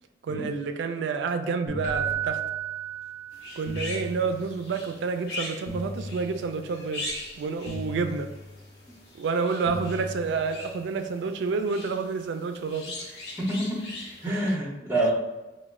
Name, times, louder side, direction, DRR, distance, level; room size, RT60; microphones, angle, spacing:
voice 1, 0.2-2.5 3.5-7.1 7.4-8.3 9.1-13.0 14.3-14.6 15.0-15.1, right 4 dB, 75° right, 7 dB, 0.3 m, -29 dB
sound 1, 1.7-2.8 3.7-4.8 5.7-6.8 7.7-8.8 9.7-10.8, left 2 dB, 80° left, 0.5 m, -39 dB
Keyboard (musical), 1.8-3.8 7.0-7.2, right 10 dB, 45° left, 0.8 m, -32 dB
sound 2, 3.3-14.3, left 2 dB, 65° left, 1.0 m, -41 dB
voice 2, 13.5-13.9 14.2-15.1, right 1 dB, 15° right, -2 dB, 0.5 m, -27 dB
3.0 x 2.1 x 3.5 m, 1.1 s
head